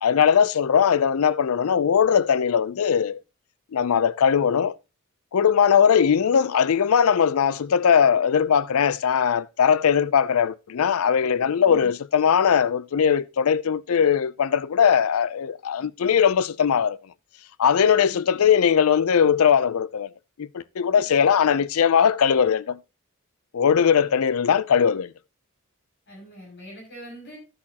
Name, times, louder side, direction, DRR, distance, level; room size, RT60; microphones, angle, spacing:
voice 1, 0.0-3.2 3.7-4.7 5.3-17.0 17.6-20.1 20.4-22.8 23.5-25.1, left 7 dB, 70° left, 0.4 m, -20 dB
voice 2, 18.1-18.5 20.9-21.0 26.1-27.4, right 1 dB, 55° left, 6.4 m, -43 dB
12.0 x 8.5 x 2.9 m
head